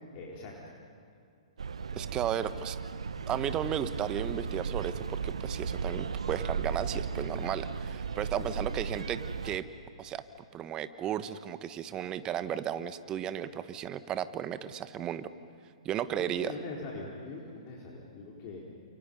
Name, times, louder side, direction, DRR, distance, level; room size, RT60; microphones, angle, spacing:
voice 1, 0.1-0.6 8.3-8.6 16.2-18.6, left 3 dB, 35° left, -3 dB, 4.3 m, -42 dB
sound 1, 1.6-9.6, right 5 dB, 75° right, 1.0 m, -35 dB
voice 2, 1.9-2.8 3.3-9.2 9.4-9.7 10.0-10.2 10.5-15.3 15.8-16.5, right 10 dB, 25° right, 12 dB, 1.2 m, -34 dB
29.5 x 28.5 x 5.5 m, 2.4 s
figure-of-eight pair, 120°, 3 cm